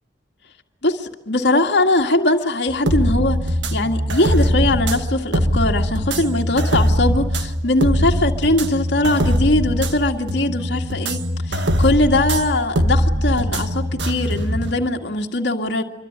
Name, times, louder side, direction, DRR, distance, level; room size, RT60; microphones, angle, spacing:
voice 1, 0.8-11.2 11.5-15.8, left 2 dB, 65° left, 2 dB, 2.0 m, -20 dB
sound 1, 2.7-14.7, equal, 70° right, 1.7 m, -21 dB
27.0 x 24.0 x 8.8 m, 0.98 s
head